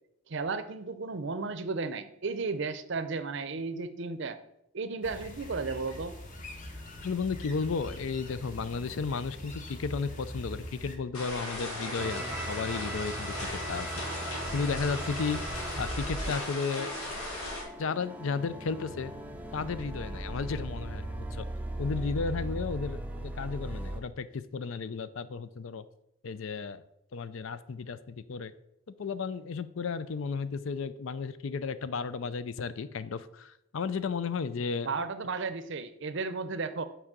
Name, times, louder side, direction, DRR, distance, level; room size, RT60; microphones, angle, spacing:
voice 1, 0.3-4.4 4.7-6.2 34.8-36.8, right 4 dB, 55° right, 12 dB, 0.6 m, -34 dB
sound 1, 5.0-11.0, left 1 dB, 35° left, 1.0 m, -43 dB
voice 2, 7.0-16.9 17.8-19.1 19.5-21.5 21.8-25.8 26.2-26.8 27.1-28.5 29.0-34.9, left 5 dB, 65° left, 15 dB, 0.4 m, -34 dB
sound 2, 11.1-17.6, left 1 dB, 90° left, 2.4 m, -37 dB
sound 3, 12.0-24.0, right 1 dB, 5° right, 0.5 m, -38 dB
6.1 x 4.7 x 6.7 m, 0.80 s
head